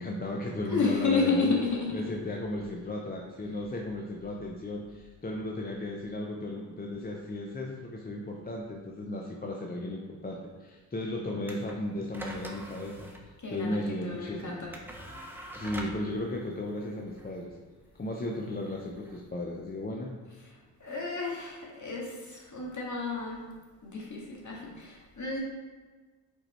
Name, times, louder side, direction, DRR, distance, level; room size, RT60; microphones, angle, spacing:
voice 1, 0.0-1.6 1.9-13.1 13.5-14.6 15.5-17.5 18.0-20.1, left 1 dB, 20° left, -1 dB, 0.7 m, -35 dB
voice 2, 0.6-2.1 13.4-14.7 20.8-23.4 23.8-25.4, left 4 dB, 45° left, -2 dB, 1.9 m, -31 dB
sound 1, 11.4-19.9, right 1 dB, 5° right, 1.0 m, -45 dB
4.9 x 4.6 x 4.4 m, 1.4 s
cardioid pair, 65°, 42 cm